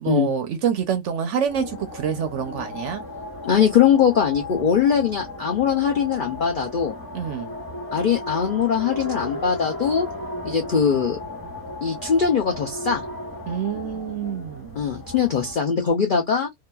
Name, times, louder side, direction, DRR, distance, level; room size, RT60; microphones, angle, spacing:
voice 1, 0.0-3.0 7.1-7.6 13.5-14.8, right 7 dB, 65° right, 0.8 m, -26 dB
sound 1, 1.5-15.5, left 1 dB, 15° left, 1.1 m, -35 dB
voice 2, 3.4-6.9 7.9-10.1 10.4-11.2 11.8-13.0 14.8-16.5, left 7 dB, 85° left, 0.4 m, -21 dB
2.8 x 2.4 x 2.2 m
omnidirectional pair, 1.6 m